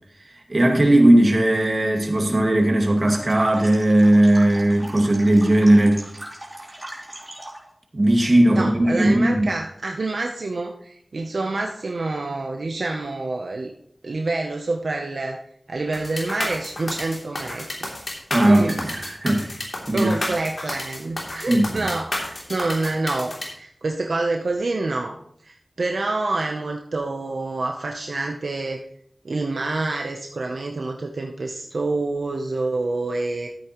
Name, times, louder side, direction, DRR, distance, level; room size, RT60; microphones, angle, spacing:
voice 1, 0.5-6.1 7.9-9.5 18.3-19.5 19.9-20.1 21.5-21.8, right 1 dB, 50° right, 2 dB, 2.1 m, -17 dB
sound 1, 2.9-7.7, right 1 dB, 30° right, 2.9 m, -38 dB
voice 2, 8.5-13.7 14.0-15.4 15.7-17.7 18.4-18.8 19.9-28.8 29.2-33.5, right 2 dB, 85° right, 2 dB, 0.8 m, -27 dB
sound 2, 15.9-23.5, left 1 dB, 65° left, 3.0 m, -30 dB
13.0 x 8.5 x 3.1 m, 0.68 s
wide cardioid pair, 50°, 0 cm